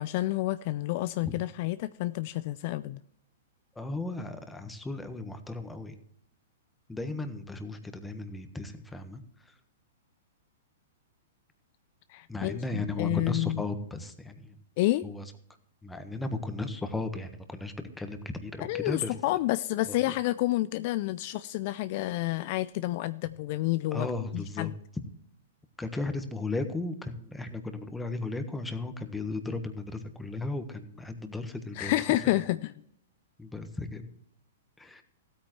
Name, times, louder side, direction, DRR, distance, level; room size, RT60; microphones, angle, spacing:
voice 1, 0.0-3.0 12.1-13.6 14.8-15.0 18.6-24.1 24.3-24.7 31.8-32.7, left 17 dB, 50° left, 15 dB, 0.4 m, -29 dB
voice 2, 3.7-6.0 6.9-9.6 12.3-14.6 15.0-15.2 15.8-19.1 19.9-20.0 23.9-24.7 25.8-31.9 33.4-34.1 34.8-35.0, left 2 dB, 5° left, 8 dB, 1.3 m, -35 dB
15.5 x 9.0 x 3.1 m, 0.72 s
hypercardioid pair, 115°, 0 cm